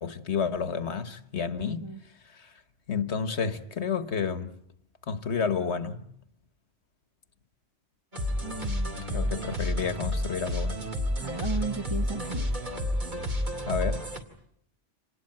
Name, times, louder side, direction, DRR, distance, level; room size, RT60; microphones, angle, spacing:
voice 1, 0.0-1.9 2.3-2.5 2.9-4.5 5.1-6.1 9.1-10.8 13.7-14.1, left 6 dB, 65° left, 1.5 m, -30 dB
voice 2, 1.7-2.0 8.4-9.5 11.2-12.6, right 4 dB, 25° right, 1.1 m, -36 dB
sound 1, 8.1-14.2, left 1 dB, 40° right, 2.7 m, -30 dB
27.0 x 19.5 x 8.8 m
omnidirectional pair, 1.3 m